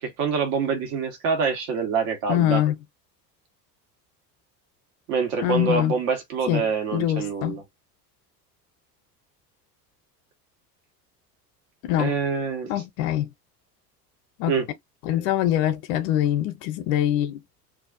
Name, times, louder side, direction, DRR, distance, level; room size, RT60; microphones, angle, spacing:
voice 1, 0.2-2.6 5.1-7.6 12.0-12.7 14.5-14.7, right 5 dB, 60° right, 1.3 m, -25 dB
voice 2, 2.3-2.8 5.4-5.9 6.5-6.7 6.9-7.6 11.8-12.2 12.7-13.3 14.4-14.5 15.0-17.4, left 12 dB, 60° left, 0.7 m, -23 dB
2.6 x 2.4 x 2.5 m
hypercardioid pair, 70°, 48 cm